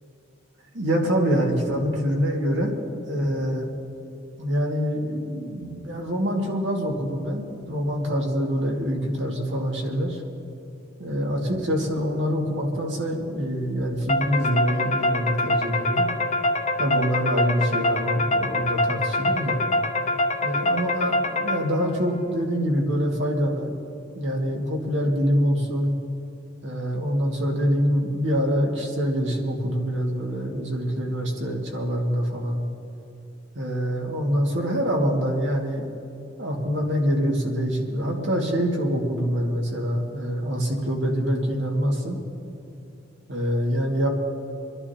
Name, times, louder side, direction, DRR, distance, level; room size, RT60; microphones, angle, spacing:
voice 1, 0.7-2.8 3.0-3.7 4.4-10.2 11.0-16.1 16.8-19.6 20.4-23.7 24.2-25.9 26.6-32.6 33.5-35.9 36.4-42.2 43.3-44.1, equal, 80° right, 0 dB, 2.0 m, -25 dB
sound 1, 14.1-21.9, left 2 dB, 35° left, 0.8 m, -25 dB
28.0 x 11.0 x 2.9 m, 2.7 s
head